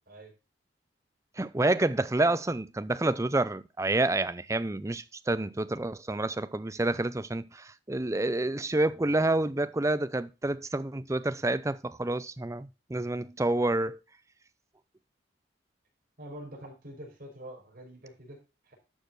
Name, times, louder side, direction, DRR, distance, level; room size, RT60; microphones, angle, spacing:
voice 1, 1.4-14.0, right 2 dB, 15° right, 0.5 m, -28 dB
voice 2, 16.2-18.7, right 1 dB, 50° right, 5.0 m, -46 dB
12.0 x 6.8 x 3.9 m
head